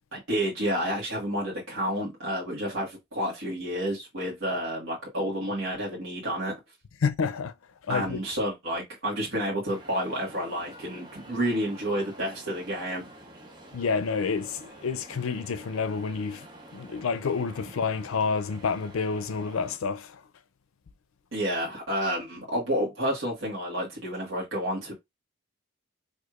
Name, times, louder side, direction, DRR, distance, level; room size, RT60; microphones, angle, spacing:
voice 1, 0.1-6.5 7.9-13.1 21.3-24.9, equal, 70° right, 1.4 m, -30 dB
voice 2, 7.0-7.5 7.9-8.2 13.7-16.5 16.7-20.2, left 5 dB, 90° left, 0.5 m, -29 dB
sound 1, 9.7-19.8, right 1 dB, 20° right, 0.8 m, -48 dB
4.5 x 2.6 x 2.4 m
head